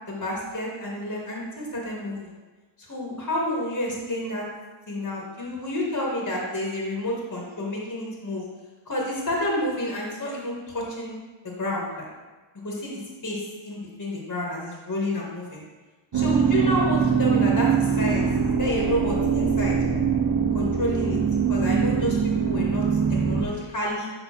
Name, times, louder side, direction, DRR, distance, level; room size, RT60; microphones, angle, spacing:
voice 1, 0.1-2.3 2.8-4.4 4.9-8.4 8.9-11.2 11.4-12.1 12.6-15.6 16.1-19.7 20.5-21.2 21.5-22.8 23.1-24.1, left 1 dB, 40° left, -3 dB, 1.9 m, -29 dB
sound 1, 16.1-23.4, right 6 dB, 55° right, 0.9 m, -23 dB
6.4 x 3.8 x 6.0 m, 1.2 s
wide cardioid pair, 85°, 49 cm